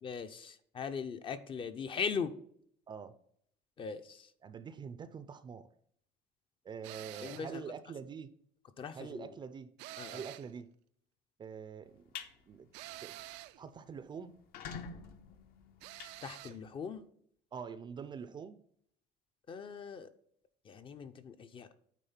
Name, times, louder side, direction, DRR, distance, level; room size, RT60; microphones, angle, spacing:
voice 1, 0.0-2.3 3.8-4.3 7.2-7.6 8.8-9.3 10.0-10.2 16.2-17.1 19.5-20.1 20.7-21.7, left 6 dB, 30° left, 10 dB, 0.6 m, -40 dB
voice 2, 4.4-5.7 6.6-8.3 8.9-9.7 10.1-10.7 11.4-12.0 12.5-12.7 13.0-13.1 13.6-14.3 17.5-18.6, right 6 dB, 25° right, 12 dB, 0.5 m, -45 dB
sound 1, 6.8-7.6 9.8-10.6 12.7-13.6 15.8-16.6, right 17 dB, 85° right, 0.5 m, -48 dB
sound 2, 11.9-12.3 12.8-13.0 13.4-13.5 13.7-13.8 14.3-16.9, left 6 dB, 60° left, 0.9 m, -46 dB
9.2 x 3.6 x 5.6 m, 0.64 s
cardioid pair, 155°, 18 cm